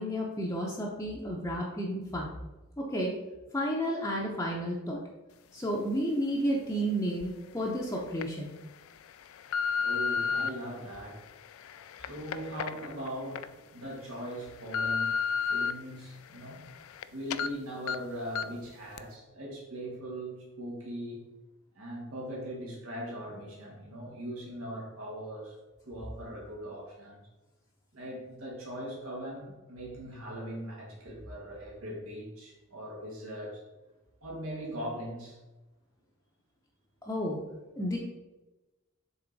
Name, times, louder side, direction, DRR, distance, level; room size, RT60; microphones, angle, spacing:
voice 1, 0.0-2.3 2.8-3.1 3.5-5.0 5.5-8.5 37.0-37.4 37.8-38.0, equal, 15° left, -3 dB, 0.7 m, -31 dB
sound 1, 7.2-7.3 7.9-8.2 8.9-10.5 11.2-13.5 13.9-14.0 14.4-15.7 16.2-17.0 17.3-17.5 17.9-18.0 18.4-18.6 19.0-19.1, left 6 dB, 80° left, 0.3 m, -32 dB
voice 2, 9.8-11.2 12.0-16.6 17.1-21.3 21.8-25.6 25.8-27.2 27.9-33.6 34.2-35.4, right 1 dB, 85° right, -3 dB, 1.8 m, -40 dB
6.9 x 3.7 x 4.0 m, 1.1 s
head